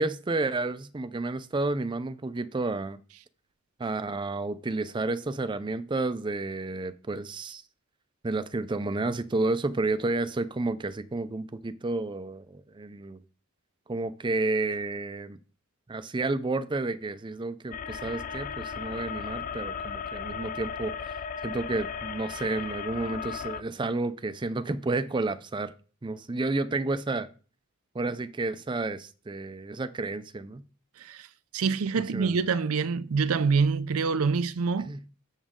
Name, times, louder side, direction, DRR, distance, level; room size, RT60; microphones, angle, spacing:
voice 1, 0.0-3.0 3.8-7.6 8.2-13.2 13.9-15.4 15.9-21.2 21.4-25.7 26.0-27.3 27.9-30.6 32.0-32.4 34.8-35.0, right 2 dB, 20° right, 0.4 m, -31 dB
sound 1, 17.7-23.6, left 6 dB, 40° left, 0.4 m, -36 dB
voice 2, 31.5-34.9, right 5 dB, 80° right, 0.5 m, -26 dB
7.3 x 7.1 x 3.6 m
head